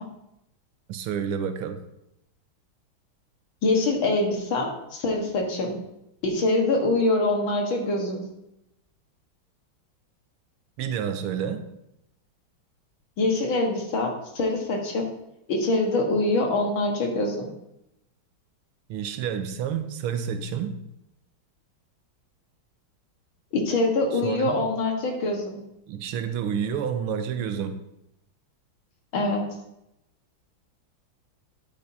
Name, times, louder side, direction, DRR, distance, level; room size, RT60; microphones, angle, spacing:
voice 1, 0.9-1.8 10.8-11.6 18.9-20.8 24.1-24.6 25.9-27.8, right 8 dB, 90° right, 8 dB, 1.7 m, -29 dB
voice 2, 3.6-5.8 6.2-8.2 13.2-15.1 15.5-17.5 23.5-25.6 29.1-29.4, left 2 dB, 70° left, 1 dB, 2.2 m, -24 dB
10.0 x 8.5 x 2.8 m, 0.84 s
omnidirectional pair, 2.3 m